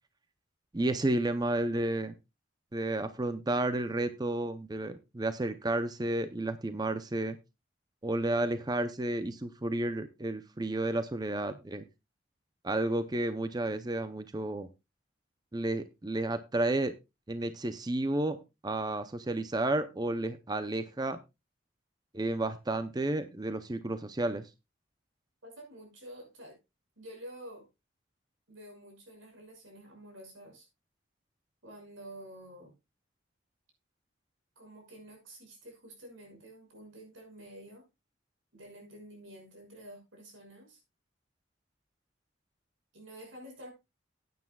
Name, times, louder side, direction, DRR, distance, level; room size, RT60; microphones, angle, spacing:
voice 1, 0.7-2.1 2.7-7.4 8.0-11.8 12.6-14.7 15.5-17.0 17.3-21.2 22.1-24.5, right 2 dB, 20° right, 10 dB, 0.6 m, -31 dB
voice 2, 25.4-26.6 27.0-27.7 28.5-30.7 31.6-32.7 34.6-37.8 38.5-40.8 42.9-43.7, right 1 dB, 90° right, 2 dB, 6.1 m, -49 dB
15.5 x 9.4 x 2.3 m, 0.24 s
head